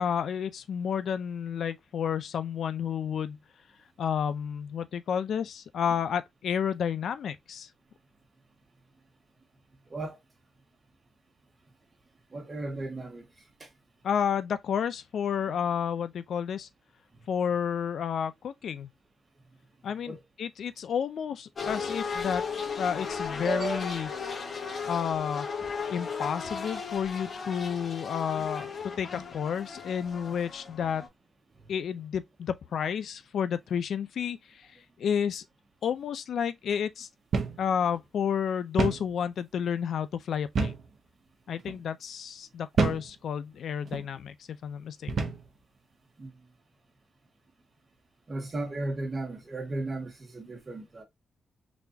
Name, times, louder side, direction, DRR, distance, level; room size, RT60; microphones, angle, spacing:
voice 1, 0.0-3.4 4.0-7.7 14.0-16.7 17.3-18.9 19.8-22.4 22.8-24.1 24.9-25.5 25.9-31.0 31.7-35.4 35.8-37.1 37.6-40.7 41.5-45.3, left 8 dB, 65° left, 0.5 m, -31 dB
voice 2, 12.3-13.2 13.6-13.7 17.1-17.2 20.1-20.2 23.4-23.8 31.6-31.7 46.2-46.3 48.3-51.0, right 2 dB, 30° right, 1.7 m, -35 dB
sound 1, 21.6-31.1, left 5 dB, 40° left, 1.6 m, -36 dB
sound 2, 37.3-37.6 37.9-38.0 38.8-39.1 40.6-40.9 41.6-41.8 42.8-43.1 43.9-44.1 45.1-45.5, right 4 dB, 55° right, 0.9 m, -28 dB
4.2 x 3.4 x 2.7 m
cardioid pair, 120°, 0 cm